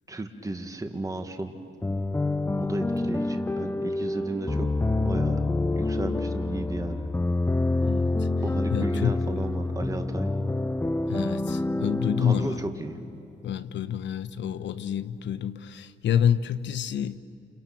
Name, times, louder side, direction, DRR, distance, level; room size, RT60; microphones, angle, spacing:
voice 1, 0.1-1.6 2.6-4.7 5.0-5.4 5.7-7.1 8.4-10.3 12.2-13.0, right 2 dB, 15° right, 2.0 m, -34 dB
sound 1, 1.8-13.5, left 2 dB, 10° left, 0.6 m, -27 dB
voice 2, 7.8-8.3 8.7-9.2 11.1-12.6 13.4-17.2, left 8 dB, 65° left, 1.1 m, -28 dB
29.5 x 29.5 x 6.1 m
cardioid pair, 90°, 20 cm